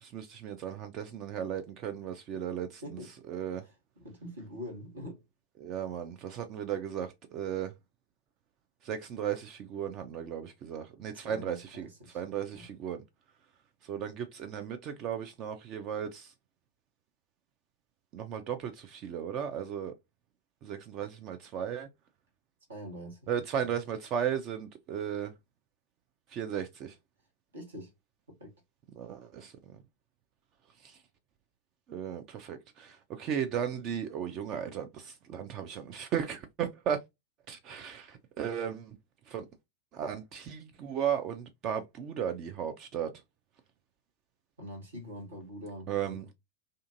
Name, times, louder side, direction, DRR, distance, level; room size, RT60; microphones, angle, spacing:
voice 1, 0.0-2.8 3.3-3.6 5.6-7.7 8.8-11.9 12.1-13.0 13.8-16.3 18.1-19.9 20.6-21.9 23.3-25.3 26.3-26.9 29.0-29.5 30.8-31.0 31.9-37.0 37.5-39.0 39.3-39.4 39.9-43.1 45.9-46.3, right 8 dB, 35° right, 0.3 m, -35 dB
voice 2, 2.8-3.1 3.6-5.2 11.1-12.2 12.5-12.7 22.7-23.3 23.6-23.7 27.5-27.9 28.3-28.5 44.6-46.3, equal, 70° right, 1.3 m, -44 dB
2.6 x 2.5 x 2.4 m
figure-of-eight pair, 90°, 0 cm